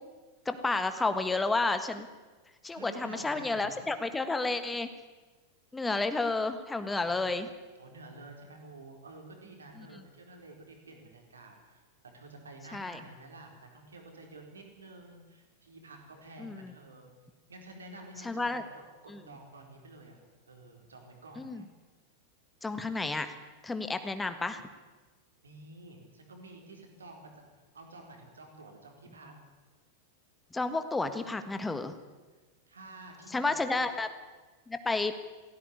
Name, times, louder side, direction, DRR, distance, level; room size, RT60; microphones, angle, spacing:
voice 1, 0.4-2.1 2.6-4.9 5.7-7.5 9.8-10.0 12.7-13.0 16.4-16.7 18.2-18.6 19.1-19.2 21.4-21.6 22.6-23.3 23.6-24.6 30.5-31.9 33.3-34.1 34.7-35.2, left 3 dB, 10° left, 10 dB, 1.5 m, -31 dB
voice 2, 2.7-3.9 7.0-7.2 7.8-11.8 12.1-17.1 17.5-20.2 20.5-21.6 25.4-27.3 27.7-29.3 32.7-33.8, right 2 dB, 70° right, 3 dB, 4.5 m, -50 dB
18.0 x 16.0 x 9.7 m, 1.3 s
figure-of-eight pair, 90°, 0 cm